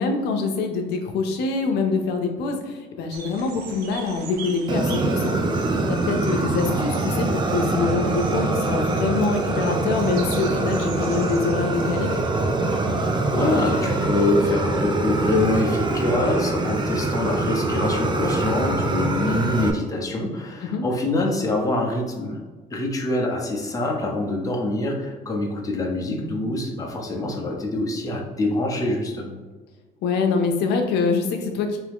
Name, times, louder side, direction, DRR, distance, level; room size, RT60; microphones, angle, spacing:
voice 1, 0.0-5.3 6.1-12.1 20.6-20.8 30.0-31.8, left 4 dB, 85° left, 3 dB, 0.6 m, -25 dB
sound 1, 3.1-12.2, right 4 dB, 70° right, 0.7 m, -41 dB
Fire, 4.7-19.7, right 2 dB, 25° right, 0.5 m, -24 dB
voice 2, 13.3-22.4 22.7-29.4, left 2 dB, 20° left, -1 dB, 0.9 m, -25 dB
3.6 x 3.0 x 3.5 m, 1.3 s
cardioid pair, 110°, 17 cm